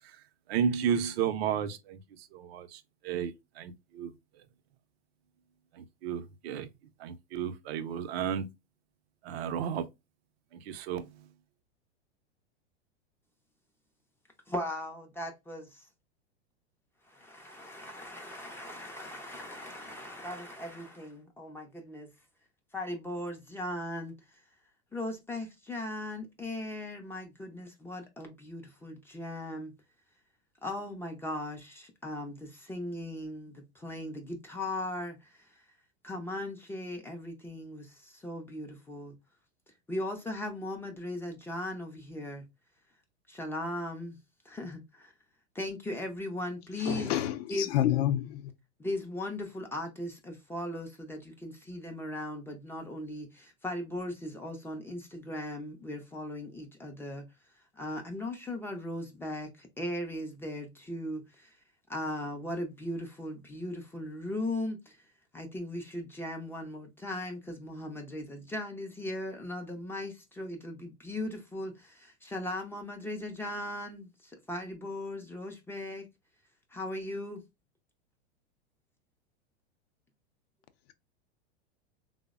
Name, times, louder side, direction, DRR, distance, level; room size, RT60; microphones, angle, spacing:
voice 1, 0.5-2.0 2.3-4.1 5.8-6.7 7.0-8.5 9.2-9.9 10.7-11.1, right 8 dB, 65° right, 0.5 m, -32 dB
voice 2, 14.5-15.9 17.1-22.1 22.7-24.1 24.9-29.7 30.6-35.6 36.0-39.1 39.9-42.4 43.3-44.2 44.5-45.1 45.5-47.1 47.5-47.8 48.8-57.3 57.7-61.6 61.9-65.0 65.3-76.1 76.7-77.4, left 1 dB, 5° left, 0.3 m, -38 dB
voice 3, 46.9-47.3 47.7-48.4, left 12 dB, 65° left, 0.5 m, -27 dB
3.3 x 2.0 x 2.3 m
hypercardioid pair, 115°, 33 cm